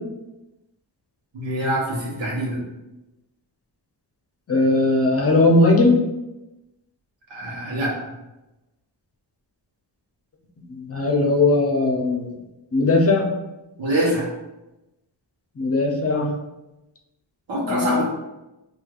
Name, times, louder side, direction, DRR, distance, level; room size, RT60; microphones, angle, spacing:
voice 1, 1.3-2.6 7.3-7.9 13.8-14.3 17.5-18.0, right 1 dB, 85° right, -4 dB, 1.3 m, -24 dB
voice 2, 4.5-6.0 10.7-12.3 12.7-13.3 15.6-16.3 17.6-18.0, left 2 dB, 30° left, 1 dB, 0.7 m, -18 dB
4.5 x 2.7 x 2.4 m, 0.99 s
cardioid pair, 85°, 45 cm